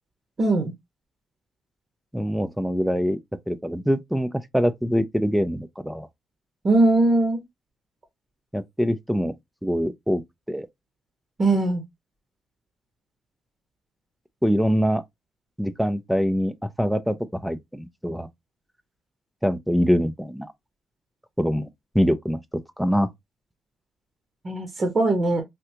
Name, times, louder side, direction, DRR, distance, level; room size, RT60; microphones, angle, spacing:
voice 1, 0.4-0.7 6.6-7.4 11.4-11.8 24.4-25.4, right 2 dB, 35° right, 0.9 m, -20 dB
voice 2, 2.1-3.2 3.5-6.1 8.5-9.3 9.6-10.2 10.5-10.7 14.4-15.0 15.6-17.2 17.4-18.3 19.4-20.5 21.4-21.7 21.9-22.4 22.8-23.1, equal, 5° right, 0.4 m, -24 dB
3.4 x 2.3 x 2.8 m
cardioid pair, 90°, 0 cm